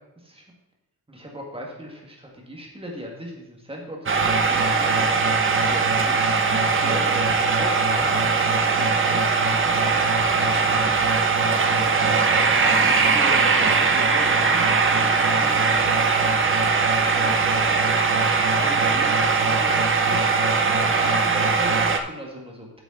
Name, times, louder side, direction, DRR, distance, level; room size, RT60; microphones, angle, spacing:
voice 1, 1.1-7.7 8.0-11.1 11.7-11.9 12.7-14.8 15.2-15.9 17.1-17.4 18.0-22.8, right 1 dB, 15° right, -2 dB, 1.9 m, -37 dB
sound 1, 4.1-22.0, right 4 dB, 35° right, 0.6 m, -20 dB
8.4 x 6.9 x 3.9 m, 0.91 s
wide cardioid pair, 135°, 35 cm